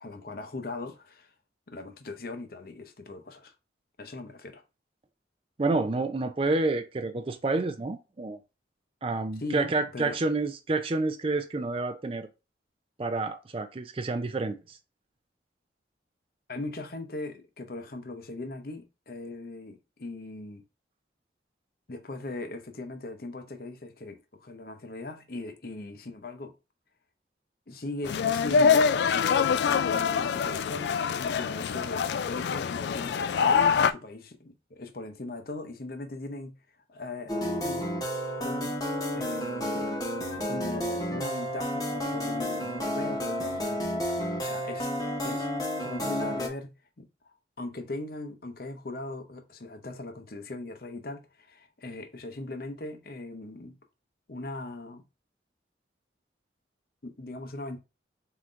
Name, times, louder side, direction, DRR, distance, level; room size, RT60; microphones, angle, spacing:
voice 1, 0.0-1.3 1.7-3.5 4.0-4.6 9.4-10.2 16.5-20.6 21.9-26.5 27.7-36.6 36.9-37.9 38.4-38.9 39.1-39.9 40.4-44.9 45.2-45.5 45.8-53.8 54.3-55.1 57.0-57.8, left 2 dB, 55° left, 0.7 m, -39 dB
voice 2, 5.6-8.4 9.0-12.3 13.0-14.8, right 3 dB, 30° right, 0.4 m, -29 dB
sound 1, 28.0-33.9, left 6 dB, 70° left, 0.3 m, -25 dB
sound 2, 37.3-46.5, equal, 20° left, 0.9 m, -31 dB
4.3 x 3.8 x 2.5 m
head